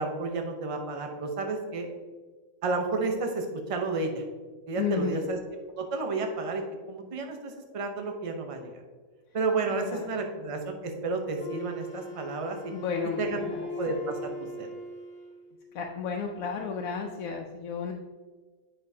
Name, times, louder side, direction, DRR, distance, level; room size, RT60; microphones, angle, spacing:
voice 1, 0.0-1.9 2.6-4.2 4.7-5.4 5.7-8.8 9.3-12.6 13.2-13.5 13.8-14.2 14.6-14.7, right 3 dB, 30° right, 3 dB, 0.7 m, -31 dB
voice 2, 4.8-5.3 9.8-10.2 12.7-13.7 15.7-17.9, left 6 dB, 90° left, 1 dB, 1.0 m, -33 dB
Wind instrument woodwind instrument, 11.4-15.5, left 2 dB, 55° left, 1.2 m, -39 dB
8.4 x 5.5 x 2.7 m, 1.4 s
omnidirectional pair, 1.4 m